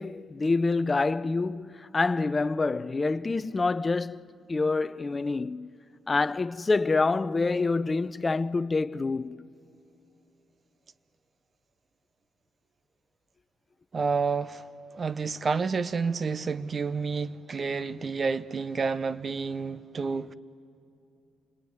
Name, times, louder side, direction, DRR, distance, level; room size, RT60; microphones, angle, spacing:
voice 1, 0.0-5.7 6.1-9.5, left 3 dB, 25° left, 0.5 m, -27 dB
voice 2, 13.9-14.7 14.9-20.3, right 5 dB, 40° right, 0.7 m, -29 dB
27.5 x 20.5 x 9.6 m
cardioid pair, 90°, 0 cm